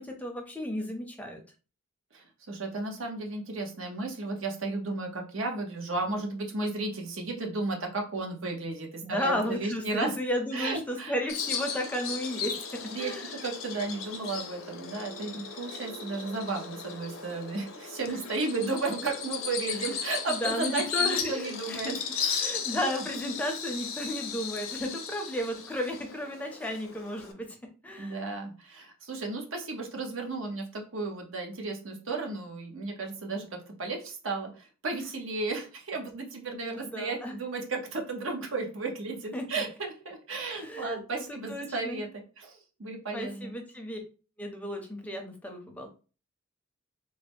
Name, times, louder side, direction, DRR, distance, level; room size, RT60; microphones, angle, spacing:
voice 1, 0.0-1.4 9.0-13.4 18.1-18.2 19.7-20.0 20.3-21.9 22.4-27.6 27.8-28.2 34.9-35.0 36.5-37.3 39.3-39.7 40.5-42.1 43.1-44.0 44.4-45.9, equal, 5° left, 3 dB, 0.5 m, -34 dB
voice 2, 2.1-10.1 10.5-11.1 12.9-13.1 13.4-23.0 28.0-43.5, right 3 dB, 75° right, 2 dB, 0.9 m, -34 dB
Bird vocalization bird call bird song, 11.3-27.3, left 7 dB, 75° left, 0.6 m, -36 dB
3.7 x 2.1 x 3.5 m, 0.36 s
head